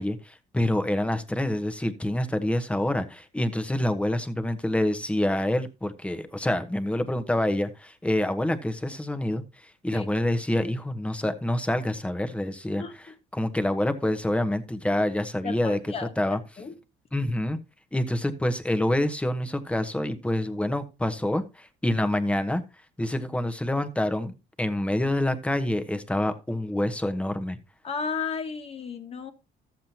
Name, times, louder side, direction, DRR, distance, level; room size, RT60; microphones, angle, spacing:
voice 1, 0.0-9.4 9.8-12.8 13.3-15.8 16.2-16.4 17.1-17.6 17.9-22.6 23.0-27.6, left 1 dB, 5° left, 1.1 m, -27 dB
voice 2, 15.4-16.1 16.6-16.7 27.8-29.3, left 5 dB, 35° left, 1.5 m, -33 dB
13.5 x 7.5 x 2.8 m
cardioid pair, 110°, 17 cm